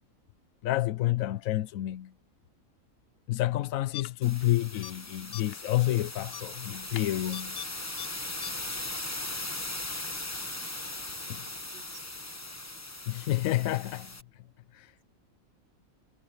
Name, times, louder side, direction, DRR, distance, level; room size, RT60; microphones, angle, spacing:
voice 1, 0.6-2.1 3.3-7.6 11.3-11.4 13.1-14.1 14.7-14.9, left 15 dB, 80° left, 1.0 m, -29 dB
sound 1, 3.9-4.4 4.7-5.0 5.3-5.7 6.3-7.7 8.0-8.1 8.4-8.5, left 12 dB, 55° left, 0.7 m, -42 dB
sound 2, 4.2-14.2, left 2 dB, 15° left, 1.0 m, -39 dB
voice 2, 10.8-12.1, right 6 dB, 45° right, 1.6 m, -59 dB
omnidirectional pair, 1.4 m